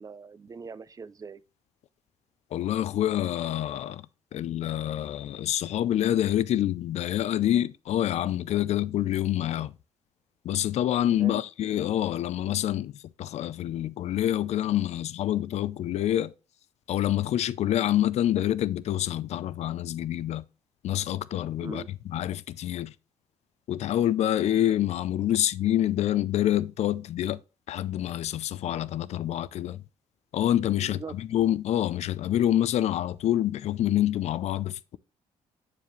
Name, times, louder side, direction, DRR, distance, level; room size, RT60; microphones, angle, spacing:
voice 1, 0.0-1.4 11.2-11.4 21.6-21.9 30.8-31.1, right 5 dB, 30° right, 0.4 m, -41 dB
voice 2, 2.5-4.0 4.3-9.7 10.4-16.3 16.9-20.4 20.8-22.9 23.7-27.4 27.7-29.8 30.3-35.0, left 12 dB, 65° left, 0.4 m, -27 dB
7.0 x 4.8 x 3.1 m
cardioid pair, 85°, 12 cm